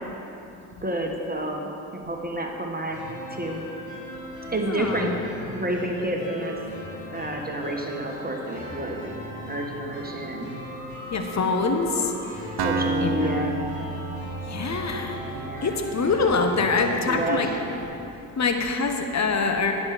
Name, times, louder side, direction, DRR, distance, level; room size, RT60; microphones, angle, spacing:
voice 1, 0.8-3.0 3.3-3.6 4.5-5.2 5.5-6.6 7.1-10.5 12.6-13.6 15.2-15.8 16.8-17.6, right 1 dB, 20° right, 1 dB, 1.5 m, -30 dB
sound 1, 2.9-17.8, left 1 dB, 90° left, 2.5 m, -38 dB
voice 2, 4.7-5.3 11.1-12.1 13.0-13.2 14.5-15.2 15.6-17.5 18.4-19.7, left 4 dB, 40° left, 5 dB, 1.2 m, -24 dB
Acoustic guitar, 12.6-16.4, right 2 dB, 60° right, 0.9 m, -30 dB
9.6 x 6.6 x 6.7 m, 2.9 s
supercardioid pair, 50°, 44 cm